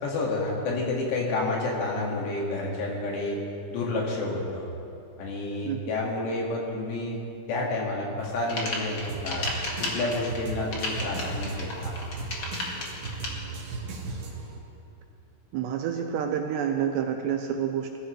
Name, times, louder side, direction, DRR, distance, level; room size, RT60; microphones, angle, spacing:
voice 1, 0.0-3.4 3.7-4.7 5.2-7.2 7.5-9.5 9.8-12.0, left 2 dB, 70° left, -2 dB, 4.1 m, -29 dB
sound 1, 8.2-13.3, left 2 dB, 90° left, 0.9 m, -33 dB
sound 2, 9.1-14.6, right 3 dB, 60° right, 3.2 m, -37 dB
voice 2, 15.5-18.0, right 8 dB, 80° right, 4 dB, 2.6 m, -28 dB
22.0 x 14.0 x 3.3 m, 2.6 s
omnidirectional pair, 5.4 m